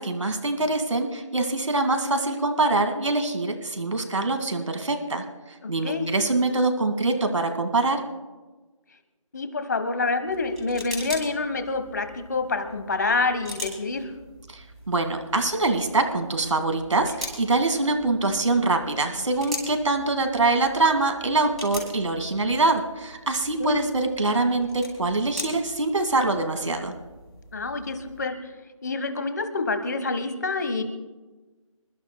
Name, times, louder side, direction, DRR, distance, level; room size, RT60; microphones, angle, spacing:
voice 1, 0.0-5.2 5.7-8.0 14.5-14.6 14.9-26.9, right 3 dB, 60° right, 5 dB, 2.3 m, -24 dB
voice 2, 5.6-6.1 9.3-14.0 23.6-23.8 27.5-28.4 28.8-30.8, left 3 dB, 30° left, 9 dB, 1.4 m, -27 dB
sound 1, 10.2-28.3, left 1 dB, ahead, 3.3 m, -42 dB
28.0 x 14.5 x 2.3 m, 1.2 s
figure-of-eight pair, 170°, 18 cm